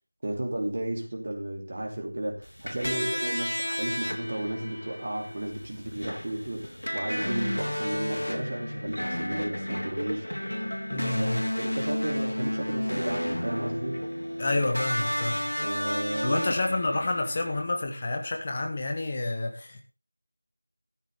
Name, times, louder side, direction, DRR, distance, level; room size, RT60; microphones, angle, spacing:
voice 1, 0.2-10.5 10.9-14.0 15.6-16.5, right 1 dB, 30° right, 1 dB, 2.9 m, -33 dB
sound 1, 2.4-17.6, equal, 65° left, 3.4 m, -32 dB
voice 2, 10.9-11.5 14.4-15.5 16.2-19.8, left 2 dB, 20° left, 4 dB, 1.3 m, -29 dB
13.5 x 12.0 x 3.6 m, 0.28 s
figure-of-eight pair, 175°, 0 cm